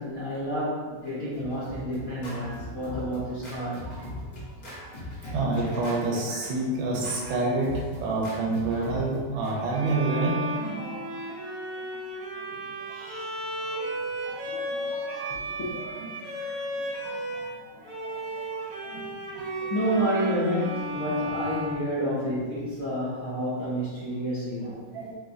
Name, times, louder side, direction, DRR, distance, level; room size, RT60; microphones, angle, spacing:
voice 1, 0.0-3.9 14.2-14.3 15.3-15.7 19.7-24.8, equal, 60° left, -8 dB, 1.0 m, -29 dB
Scratching (performance technique), 1.1-9.5, left 1 dB, 85° left, 0.4 m, -40 dB
voice 2, 3.6-4.1 5.3-7.7 8.0-11.5 12.9-13.3 13.6-13.8 14.2-16.1 16.4-16.7 17.0-17.1 17.4-18.5 18.8-19.0 19.3-19.7 24.9-25.2, right 2 dB, 85° right, -2 dB, 1.4 m, -30 dB
Bowed string instrument, 9.7-17.6 17.8-22.6, right 1 dB, 60° right, 1.0 m, -34 dB
3.8 x 3.0 x 2.6 m, 1.5 s
omnidirectional pair, 2.1 m